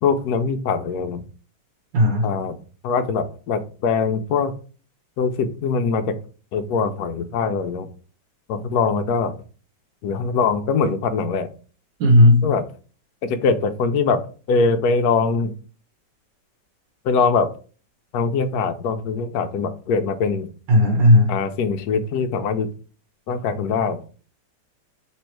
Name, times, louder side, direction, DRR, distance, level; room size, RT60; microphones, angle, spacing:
voice 1, 0.0-1.2 2.2-2.6 2.8-4.5 5.2-6.1 6.5-7.9 8.5-9.3 10.0-11.5 12.4-12.6 13.2-14.2 14.5-15.5 17.0-17.5 18.1-20.5 21.3-22.7 23.3-24.0, left 5 dB, 70° left, 8 dB, 1.0 m, -22 dB
voice 2, 1.9-2.3 12.0-12.4 20.7-21.3, left 1 dB, 85° right, 0 dB, 1.6 m, -14 dB
3.4 x 3.2 x 4.4 m, 0.38 s
omnidirectional pair, 1.9 m